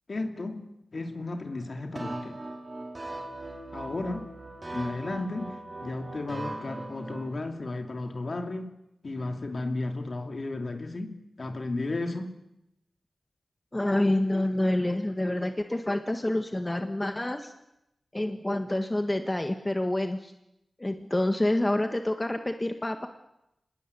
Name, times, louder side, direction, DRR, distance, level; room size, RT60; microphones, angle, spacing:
voice 1, 0.1-0.6 0.9-2.4 3.7-4.3 4.7-8.7 9.0-12.3, left 2 dB, 50° left, 5 dB, 2.9 m, -34 dB
sound 1, 2.0-7.3, right 2 dB, 30° right, 4.9 m, -39 dB
voice 2, 13.7-17.5 18.1-20.3 20.8-23.1, left 1 dB, 20° left, 6 dB, 1.6 m, -27 dB
27.0 x 20.5 x 8.5 m, 0.85 s
wide cardioid pair, 105°, 0 cm